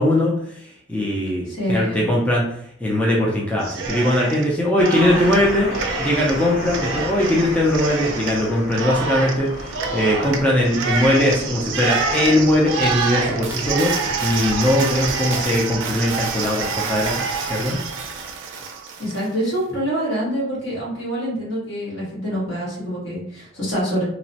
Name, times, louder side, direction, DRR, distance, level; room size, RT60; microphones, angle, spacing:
voice 1, 0.0-2.4 2.8-5.7 6.0-13.9 14.2-17.8, left 1 dB, 5° left, -4 dB, 0.4 m, -20 dB
voice 2, 1.5-2.1 19.0-24.1, equal, 70° left, -6 dB, 1.4 m, -25 dB
Cheering, 3.6-4.5 4.8-19.2, right 4 dB, 85° right, 0.4 m, -27 dB
sound 1, 5.0-15.5, left 1 dB, 45° left, 1.0 m, -34 dB
2.9 x 2.0 x 2.7 m, 0.71 s
head